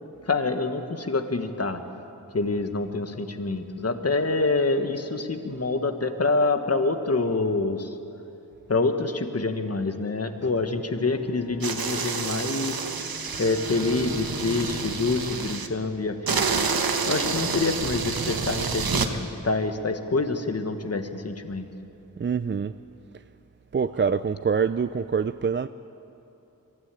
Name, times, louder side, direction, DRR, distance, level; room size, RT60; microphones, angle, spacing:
voice 1, 0.2-1.8 2.3-7.9 8.7-12.9 13.4-16.5 17.1-21.6, left 3 dB, 45° left, 8 dB, 1.4 m, -26 dB
Bowed string instrument, 10.4-15.1, right 2 dB, 5° left, 3.1 m, -43 dB
sound 1, 11.6-15.7 16.3-19.1, right 5 dB, 85° right, 1.2 m, -28 dB
voice 2, 22.2-22.7 23.7-25.7, right 6 dB, 35° right, 12 dB, 0.4 m, -25 dB
23.0 x 13.0 x 9.0 m, 2.9 s
wide cardioid pair, 85°, 35 cm